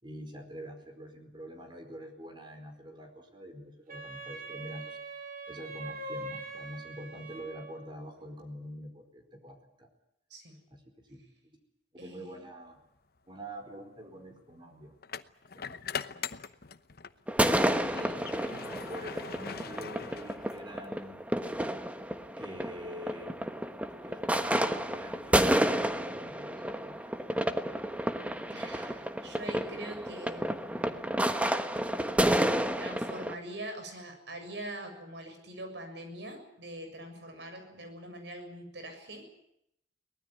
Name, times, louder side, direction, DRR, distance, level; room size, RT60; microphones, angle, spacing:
voice 1, 0.0-5.0 5.5-9.9 10.7-11.6 11.9-12.8 13.2-15.0 15.5-16.3 17.4-18.3 18.9-21.2 22.4-23.6 24.0-27.0, equal, 25° right, 5 dB, 4.6 m, -45 dB
Wind instrument woodwind instrument, 3.9-8.0, right 2 dB, 50° right, 3.5 m, -42 dB
voice 2, 12.0-12.3 28.5-31.1 32.7-39.3, right 1 dB, 75° right, 6 dB, 7.2 m, -43 dB
sound 1, 13.0-13.2 15.0-17.2 17.6-20.9, left 6 dB, 60° left, 0.9 m, -41 dB
sound 2, 17.3-33.3, right 1 dB, 10° right, 1.3 m, -30 dB
23.5 x 19.5 x 9.3 m, 0.76 s
head